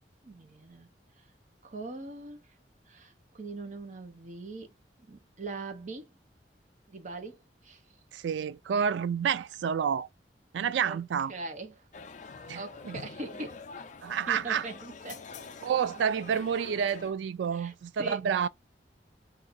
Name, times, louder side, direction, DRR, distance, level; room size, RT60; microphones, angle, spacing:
voice 1, 0.2-0.9 1.2-1.3 1.6-2.4 2.9-4.7 5.1-6.1 6.9-7.8 8.8-8.9 10.8-11.0 11.3-11.8 12.5-13.6 14.3-15.2 17.5-17.7 18.0-18.2, right 3 dB, 45° right, 0.8 m, -41 dB
voice 2, 8.1-10.1 10.5-11.3 12.5-13.0 14.0-14.7 15.6-18.5, right 7 dB, 85° right, 0.3 m, -29 dB
sound 1, 11.9-17.1, left 4 dB, 45° left, 0.4 m, -46 dB
2.7 x 2.4 x 3.9 m
head